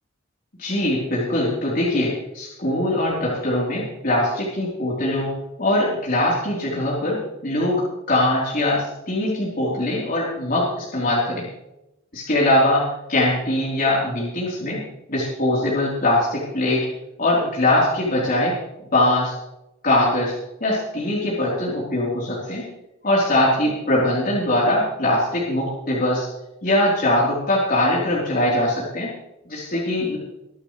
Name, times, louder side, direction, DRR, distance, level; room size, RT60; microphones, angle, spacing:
voice 1, 0.6-5.3 5.6-7.8 8.1-11.4 12.1-14.8 15.1-16.9 17.2-18.5 18.9-19.3 19.8-22.6 23.0-26.3 26.6-29.1 29.5-30.2, left 1 dB, 45° left, -6 dB, 4.0 m, -22 dB
24.0 x 11.5 x 3.3 m, 0.91 s
head